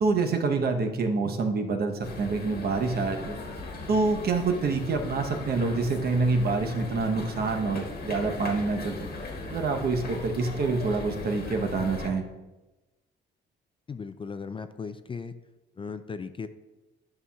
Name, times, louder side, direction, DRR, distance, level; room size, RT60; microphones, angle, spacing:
voice 1, 0.0-3.4 3.9-9.0 9.5-12.2, right 3 dB, 50° right, 4 dB, 0.9 m, -26 dB
sound 1, 2.0-12.1, left 2 dB, 55° left, 1.4 m, -38 dB
voice 2, 13.9-15.4 15.8-16.5, left 5 dB, 25° left, 10 dB, 0.4 m, -37 dB
11.0 x 5.7 x 2.3 m, 1.1 s
cardioid pair, 90°, 20 cm